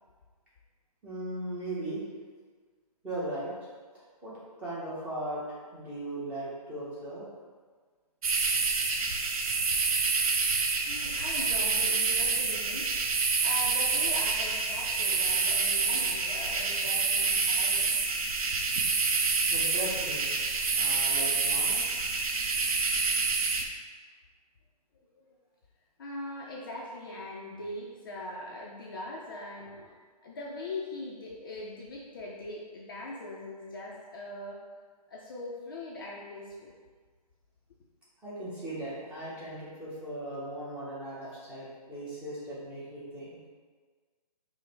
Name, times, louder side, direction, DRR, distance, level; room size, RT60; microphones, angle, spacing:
voice 1, 1.0-2.0 3.0-3.5 4.2-5.4 5.7-7.2 19.5-20.2 20.7-21.8 38.2-43.4, right 1 dB, 5° right, -10 dB, 0.6 m, -38 dB
sound 1, 8.2-23.6, right 4 dB, 60° right, 0.5 m, -27 dB
voice 2, 10.9-12.9 13.4-17.9 25.2-25.3 26.0-34.6 35.1-36.7, left 2 dB, 35° left, -4 dB, 0.4 m, -41 dB
4.7 x 2.0 x 3.3 m, 1.5 s
hypercardioid pair, 155°, 21 cm